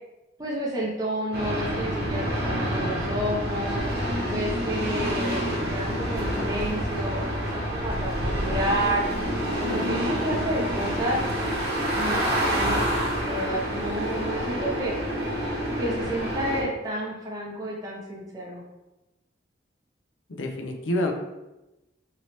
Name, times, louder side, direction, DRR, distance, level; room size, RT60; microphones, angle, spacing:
voice 1, 0.4-3.8 4.3-9.1 9.6-11.2 11.9-14.9 15.8-18.6, right 1 dB, 20° right, -4 dB, 0.5 m, -30 dB
sound 1, 1.3-16.6, equal, 55° right, 0.8 m, -27 dB
voice 2, 20.3-21.1, left 1 dB, 80° left, 3 dB, 0.5 m, -27 dB
3.0 x 2.8 x 2.9 m, 1.0 s
head